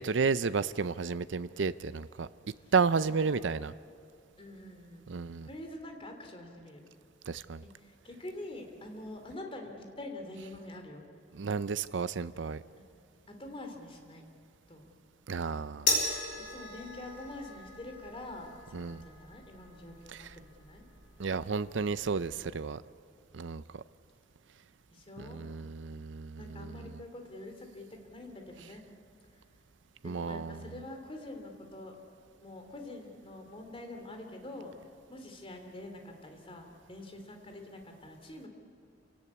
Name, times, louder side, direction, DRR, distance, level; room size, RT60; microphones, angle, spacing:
voice 1, 0.0-2.3 2.7-3.7 5.1-5.5 7.3-7.6 11.3-12.6 15.3-16.0 18.7-19.0 20.1-20.3 21.2-22.8 23.3-23.6 25.2-26.8 30.0-30.7, right 5 dB, 70° right, 14 dB, 0.5 m, -32 dB
voice 2, 4.4-5.1 5.4-6.8 7.6-11.0 12.8-12.9 13.3-14.2 14.7-14.9 16.4-20.8 24.9-25.4 26.4-28.8 30.0-31.9 32.4-34.7 35.1-38.5, left 1 dB, 30° left, 4 dB, 3.1 m, -45 dB
sound 1, 15.9-22.4, left 3 dB, 80° left, 5.6 m, -37 dB
28.5 x 18.0 x 8.5 m, 2.4 s
head